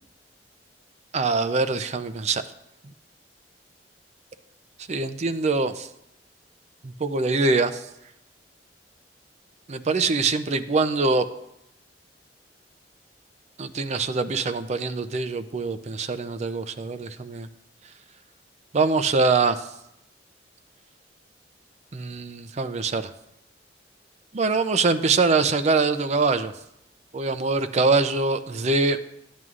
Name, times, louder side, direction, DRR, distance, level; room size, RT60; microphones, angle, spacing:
voice 1, 1.1-2.4 4.9-5.9 6.8-7.8 9.7-11.3 13.6-17.5 18.7-19.6 21.9-23.1 24.3-26.5 27.1-29.0, right 3 dB, 40° right, 10 dB, 0.5 m, -23 dB
13.5 x 9.3 x 2.5 m, 0.83 s
head